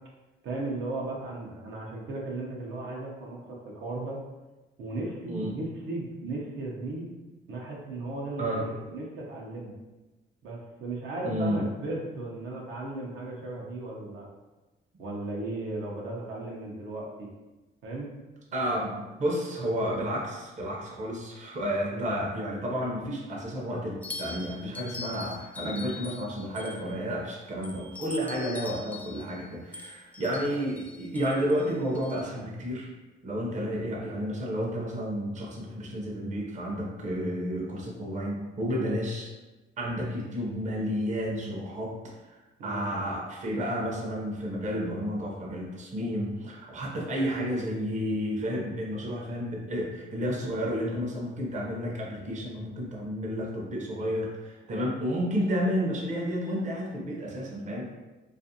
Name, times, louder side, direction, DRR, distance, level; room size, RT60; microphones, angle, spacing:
voice 1, 0.4-4.2 4.8-7.1 7.5-9.8 10.4-14.3 15.0-17.3 17.8-18.1 21.9-22.1 42.6-42.8, right 2 dB, 75° right, -3 dB, 0.6 m, -36 dB
voice 2, 11.2-11.6 18.5-32.9 33.2-39.3 39.8-42.0 42.2-57.8, equal, 35° right, -2 dB, 0.6 m, -31 dB
sound 1, 24.0-27.1 27.6-32.2, left 3 dB, 10° left, 0.4 m, -42 dB
2.5 x 2.4 x 2.6 m, 1.1 s
cardioid pair, 90°, 20 cm